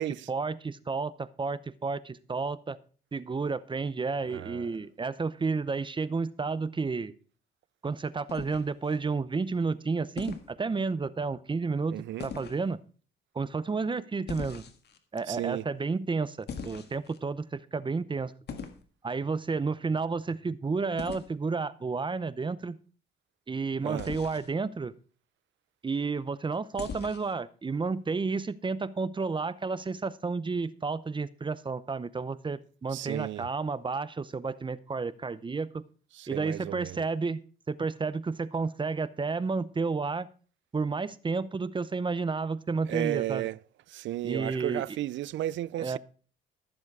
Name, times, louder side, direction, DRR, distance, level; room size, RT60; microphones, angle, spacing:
voice 1, 0.3-2.8 3.1-7.1 7.8-12.0 12.2-12.8 13.3-14.6 15.1-18.3 19.0-22.8 23.5-24.9 25.8-35.8 36.3-37.4 37.7-40.3 40.7-43.5 44.2-44.8 45.8-46.0, right 4 dB, 25° right, 0.7 m, -31 dB
voice 2, 4.3-4.8 11.9-12.3 15.3-15.7 23.8-24.1 32.9-33.5 36.1-37.0 42.9-43.6 43.9-46.0, right 14 dB, 70° right, 0.4 m, -34 dB
sound 1, 8.3-9.0 10.2-10.5 12.2-12.6 14.3-15.0 16.5-17.2 18.5-18.8 21.0-21.3 24.0-24.5 26.8-27.3, left 6 dB, 55° left, 1.8 m, -40 dB
14.0 x 7.2 x 4.7 m
cardioid pair, 90°, 20 cm